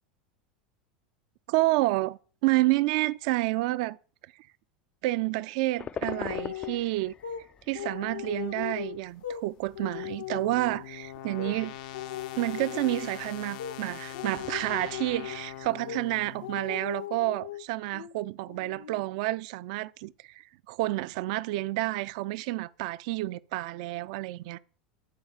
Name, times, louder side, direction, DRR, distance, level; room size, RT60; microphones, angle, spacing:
voice 1, 1.5-4.0 5.0-7.1 7.7-11.7 12.4-24.6, right 19 dB, 55° right, 0.4 m, -29 dB
sound 1, 5.8-15.7, left 7 dB, 25° left, 0.4 m, -46 dB
sound 2, 6.0-6.8 7.2-7.4 7.7-9.4 9.7-10.8 11.4-11.6 11.9-13.2 13.6-13.8 14.1-15.5 15.9-16.1 16.4-17.7 17.9-18.1 18.5-19.0, left 12 dB, 75° left, 1.2 m, -38 dB
sound 3, 9.7-16.8, left 12 dB, 60° left, 0.7 m, -43 dB
11.0 x 4.7 x 7.4 m
figure-of-eight pair, 80°, 5 cm